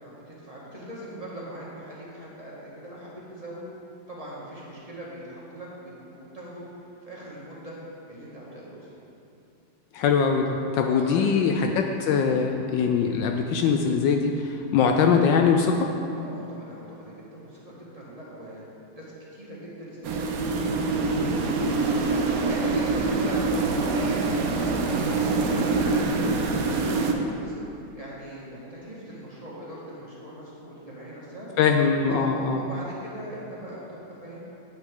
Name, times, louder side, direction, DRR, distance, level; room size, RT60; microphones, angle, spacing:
voice 1, 0.0-3.6 4.1-6.6 7.0-7.8 8.1-9.0 11.0-11.4 16.1-18.6 18.9-21.6 21.8-24.3 24.6-27.5 27.9-31.5 32.1-34.4, right 1 dB, 20° right, -7 dB, 1.6 m, -40 dB
voice 2, 9.9-10.5 10.7-15.9 31.6-32.6, left 6 dB, 75° left, 4 dB, 1.2 m, -22 dB
sound 1, 20.0-27.1, right 3 dB, 65° right, 0.9 m, -25 dB
9.3 x 9.0 x 3.8 m, 2.8 s
omnidirectional pair, 2.1 m